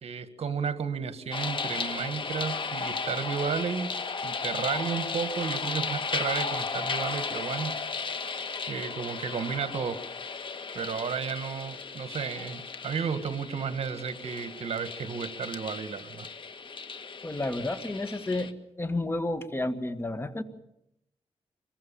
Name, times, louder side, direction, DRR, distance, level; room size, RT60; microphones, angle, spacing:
voice 1, 0.0-3.9 4.2-7.8 8.7-10.0 10.7-16.3, right 6 dB, 65° right, 11 dB, 1.8 m, -33 dB
sound 1, 1.3-18.5, left 4 dB, 50° left, 1.7 m, -35 dB
voice 2, 17.2-18.5 18.8-20.4, left 2 dB, 20° left, 9 dB, 2.0 m, -31 dB
25.5 x 22.5 x 7.1 m, 0.81 s
cardioid pair, 95°, 11 cm